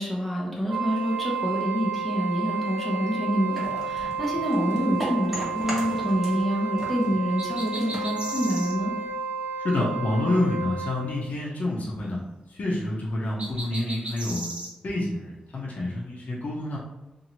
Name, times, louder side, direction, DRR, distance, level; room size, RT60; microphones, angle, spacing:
voice 1, 0.0-8.9, equal, 10° left, -4 dB, 0.8 m, -27 dB
Wind instrument woodwind instrument, 0.6-11.2, right 5 dB, 80° right, 0.4 m, -31 dB
sound 1, 3.5-6.5 6.7-9.1, equal, 10° right, 1.1 m, -38 dB
sound 2, 7.4-8.8 13.4-14.7, right 1 dB, 40° right, 0.7 m, -36 dB
voice 2, 9.6-12.2 12.5-14.5 14.8-16.8, left 1 dB, 65° left, -5 dB, 0.7 m, -28 dB
2.8 x 2.6 x 2.9 m, 0.98 s
wide cardioid pair, 110°, 3 cm